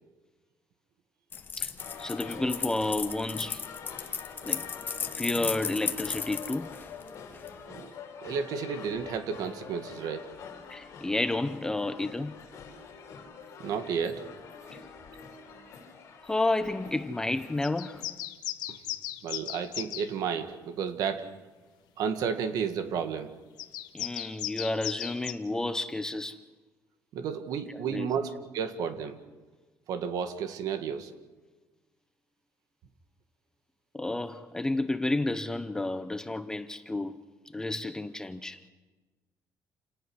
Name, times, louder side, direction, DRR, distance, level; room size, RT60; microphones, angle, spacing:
sound 1, 1.3-7.6, left 6 dB, 30° left, 1.3 m, -35 dB
sound 2, 1.8-18.0, left 6 dB, 45° left, 4.3 m, -46 dB
voice 1, 2.0-3.6 4.4-4.6 5.1-6.7 10.7-12.3 16.2-18.0 23.9-26.4 27.7-28.1 33.9-37.2 37.5-38.6, left 2 dB, 10° left, 0.7 m, -31 dB
voice 2, 8.2-10.3 13.6-14.3 18.7-18.8 19.2-21.3 22.0-23.3 27.1-29.2 29.9-31.1, right 6 dB, 65° right, 1.8 m, -32 dB
sound 3, 17.6-20.1 23.6-25.3, left 13 dB, 85° left, 1.3 m, -36 dB
28.5 x 18.0 x 6.3 m
cardioid pair, 165°, 7 cm